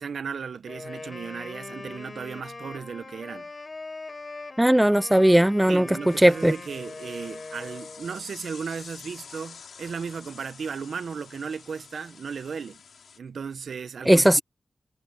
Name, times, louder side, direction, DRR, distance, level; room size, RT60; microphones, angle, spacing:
voice 1, 0.0-3.5 5.7-12.8 13.2-14.4, right 6 dB, 80° right, 0.8 m, -35 dB
Wind instrument woodwind instrument, 0.7-8.3, left 3 dB, 45° left, 7.2 m, -41 dB
voice 2, 4.6-5.9 6.2-6.5 14.1-14.4, right 1 dB, 10° right, 0.3 m, -18 dB
sound 1, 6.1-13.2, left 6 dB, 85° left, 6.1 m, -47 dB
cardioid pair, 50°, 0 cm